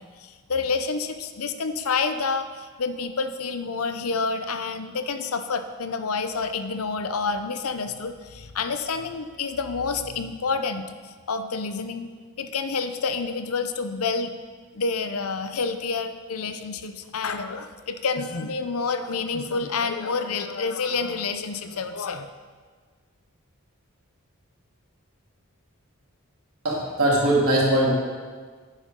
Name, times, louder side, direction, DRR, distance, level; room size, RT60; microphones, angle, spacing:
voice 1, 0.0-12.1 12.4-14.3 14.7-22.3, left 4 dB, 85° left, 9 dB, 0.7 m, -28 dB
voice 2, 26.6-27.9, right 1 dB, 85° right, -4 dB, 3.1 m, -20 dB
11.0 x 9.8 x 3.8 m, 1.6 s
head